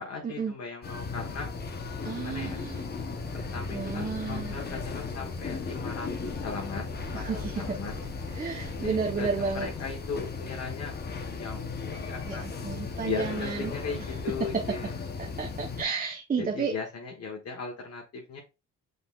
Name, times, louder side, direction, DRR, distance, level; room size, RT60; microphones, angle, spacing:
voice 1, 0.0-1.5 2.1-2.6 3.3-8.0 8.8-10.9 11.4-12.5 13.0-14.9 16.4-18.4, left 4 dB, 55° left, 1.1 m, -38 dB
sound 1, 0.8-15.8, left 4 dB, 35° left, 0.8 m, -36 dB
voice 2, 2.0-2.8 3.7-4.5 7.1-7.8 8.4-9.7 12.3-13.7 15.2-16.7, right 5 dB, 30° right, 0.7 m, -32 dB
sound 2, 2.3-10.7, left 1 dB, ahead, 1.3 m, -44 dB
5.5 x 3.9 x 2.3 m
cardioid pair, 90°, 30 cm